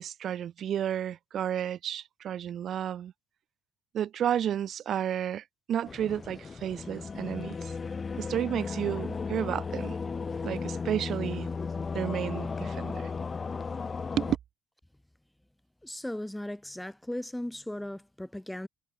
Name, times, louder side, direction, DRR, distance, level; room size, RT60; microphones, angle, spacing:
voice 1, 0.0-3.1 3.9-7.7 8.2-10.0 10.4-11.5 11.9-13.1 14.2-14.4, right 10 dB, 55° right, 0.6 m, -32 dB
sound 1, 5.8-14.4, left 5 dB, 30° left, 2.5 m, -35 dB
voice 2, 15.8-18.7, left 1 dB, 5° left, 1.6 m, -37 dB
supercardioid pair, 80°, 0 cm